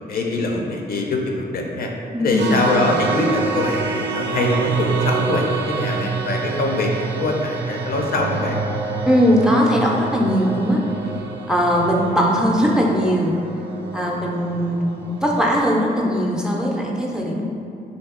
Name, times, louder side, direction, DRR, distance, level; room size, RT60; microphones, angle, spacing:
voice 1, 0.1-1.9 2.2-8.6, left 2 dB, 65° left, 1 dB, 0.4 m, -23 dB
voice 2, 2.1-2.5 9.1-10.8 11.5-13.3 13.9-17.4, equal, 5° right, -2 dB, 0.3 m, -19 dB
sound 1, 2.4-15.6, right 4 dB, 90° right, 0.4 m, -27 dB
2.7 x 2.6 x 3.6 m, 2.6 s
wide cardioid pair, 110°, 17 cm